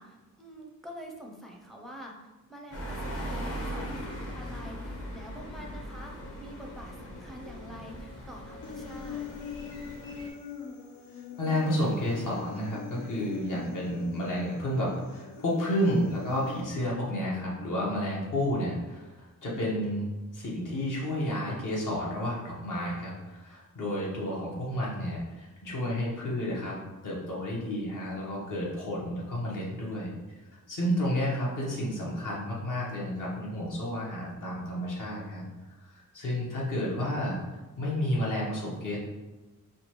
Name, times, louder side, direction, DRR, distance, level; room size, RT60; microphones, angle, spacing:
voice 1, 0.0-9.3, equal, ahead, 0 dB, 0.5 m, -46 dB
sound 1, 2.7-10.3, equal, 40° left, 0.9 m, -39 dB
Human voice, 8.6-16.6, left 7 dB, 85° left, 0.7 m, -43 dB
voice 2, 11.4-26.8 27.0-30.1 30.7-35.4 35.9-37.4 37.8-39.0, equal, 65° left, -4 dB, 1.3 m, -31 dB
5.1 x 2.3 x 3.0 m, 1.2 s
wide cardioid pair, 135°, 33 cm